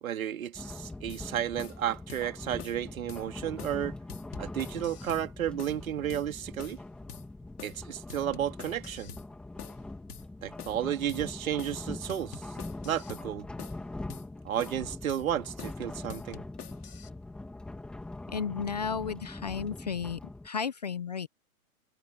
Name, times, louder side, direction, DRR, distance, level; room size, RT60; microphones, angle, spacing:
voice 1, 0.0-4.0 4.4-6.8 7.6-9.2 10.4-12.4 12.8-13.5 14.4-16.4, right 10 dB, 65° right, 2.9 m, -32 dB
sound 1, 0.5-20.5, left 2 dB, ahead, 1.3 m, -42 dB
sound 2, 1.1-1.3 1.6-1.8 2.1-2.3 2.6-2.8 3.1-3.2 3.6-3.8 4.1-5.3 5.6-5.8 6.1-6.3 6.6-6.8 7.1-7.3 7.6-7.8 8.1-9.3 9.6-9.8 10.1-10.3 10.6-10.8 11.1-11.3 11.6-11.8 12.1-13.3 13.6-13.8 14.1-14.3 14.6-14.8 15.1-15.3 15.6-15.8 16.1-17.1, left 8 dB, 90° left, 2.6 m, -46 dB
voice 2, 18.3-20.2 20.4-21.3, left 6 dB, 30° left, 0.4 m, -33 dB
hypercardioid pair, 165°, 44 cm